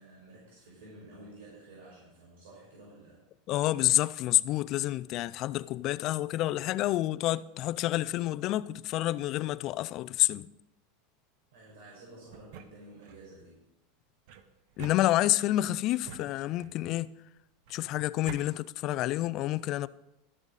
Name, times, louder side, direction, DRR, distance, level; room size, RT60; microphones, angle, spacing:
voice 1, 0.0-3.2 11.5-13.6, right 2 dB, 75° right, 5.5 m, -51 dB
voice 2, 3.5-10.5 14.8-17.1 17.7-19.9, left 15 dB, 40° left, 0.4 m, -28 dB
sound 1, 12.3-13.3 14.3-15.5 16.0-16.9 17.7-18.4, right 8 dB, 55° right, 1.0 m, -48 dB
13.5 x 11.0 x 4.0 m
supercardioid pair, 155°, 0 cm